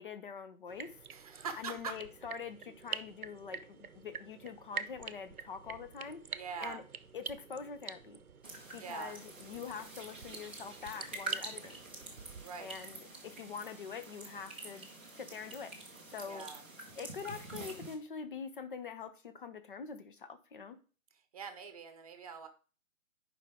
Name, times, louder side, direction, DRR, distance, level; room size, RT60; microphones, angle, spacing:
voice 1, 0.0-1.0 1.6-6.2 6.6-6.8 7.1-8.2 8.7-11.8 12.6-14.9 15.2-15.7 16.1-16.5 17.0-20.8, left 6 dB, 35° left, 9 dB, 1.0 m, -44 dB
sound 1, 0.7-12.4, right 6 dB, 80° right, 0.8 m, -46 dB
voice 2, 1.1-2.0 6.3-6.8 8.8-9.2 12.4-12.7 16.3-16.6 21.1-22.5, right 5 dB, 25° right, 8 dB, 1.0 m, -43 dB
sound 2, 8.4-17.9, right 2 dB, 10° right, 0.6 m, -47 dB
10.5 x 5.2 x 3.7 m, 0.37 s
figure-of-eight pair, 145°, 43 cm